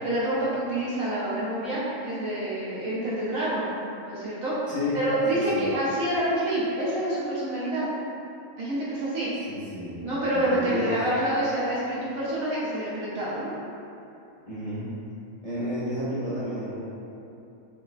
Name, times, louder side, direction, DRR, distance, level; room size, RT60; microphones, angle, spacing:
voice 1, 0.0-3.7 4.0-7.9 8.6-9.3 10.0-13.5, right 1 dB, 70° right, -8 dB, 1.1 m, -27 dB
voice 2, 4.7-5.0 5.3-5.7 9.5-10.0 10.3-11.0 14.5-14.9 15.4-16.9, left 1 dB, 50° left, -11 dB, 0.4 m, -31 dB
5.6 x 2.1 x 2.4 m, 2.8 s
omnidirectional pair, 1.5 m